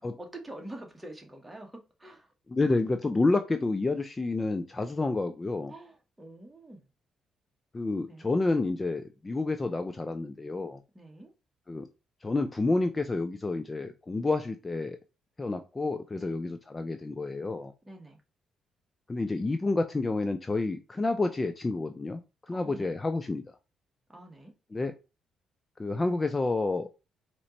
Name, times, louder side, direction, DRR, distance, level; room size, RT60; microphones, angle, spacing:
voice 1, 0.2-2.3 5.7-6.9 8.1-8.3 10.9-11.3 16.1-16.4 17.9-18.2 22.5-23.0 24.1-24.5, right 1 dB, 10° right, 1.4 m, -46 dB
voice 2, 2.5-5.7 7.7-10.8 11.7-11.9 12.2-15.0 15.4-17.7 19.1-22.2 22.5-23.4 24.7-25.0 25.8-26.9, left 3 dB, 25° left, 0.4 m, -29 dB
4.2 x 3.0 x 4.0 m
cardioid pair, 90°, 0 cm